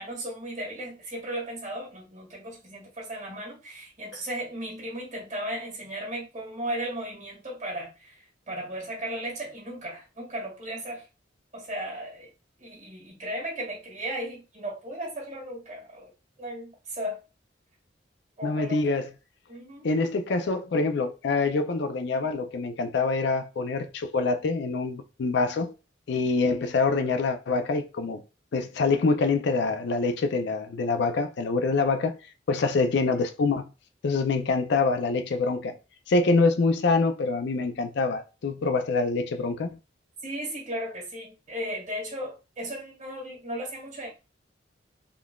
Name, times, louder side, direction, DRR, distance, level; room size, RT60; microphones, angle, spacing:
voice 1, 0.0-11.1 11.5-12.3 12.6-16.1 16.4-17.2 18.4-19.0 19.5-19.9 40.2-44.1, right 1 dB, 40° right, 1.6 m, -36 dB
voice 2, 18.4-19.1 19.8-25.7 26.1-28.2 28.5-32.1 32.5-33.7 34.0-35.8 36.1-39.7, left 3 dB, 60° left, 0.4 m, -25 dB
3.7 x 2.4 x 2.2 m
head